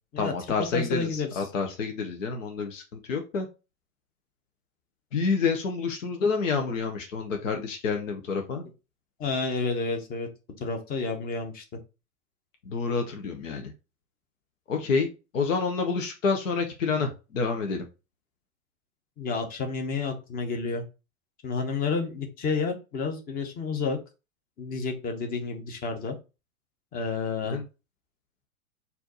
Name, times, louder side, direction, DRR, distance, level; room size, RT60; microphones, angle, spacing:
voice 1, 0.2-3.5 5.1-8.7 12.6-13.7 14.7-15.1 15.3-17.9 27.4-27.6, left 5 dB, 60° left, 4 dB, 0.9 m, -28 dB
voice 2, 0.7-1.4 9.2-10.3 10.6-11.6 19.2-20.8 21.4-24.0 24.6-26.1 26.9-27.6, left 4 dB, 20° left, 4 dB, 0.9 m, -30 dB
4.3 x 2.8 x 4.1 m, 0.29 s
figure-of-eight pair, 105°, 43 cm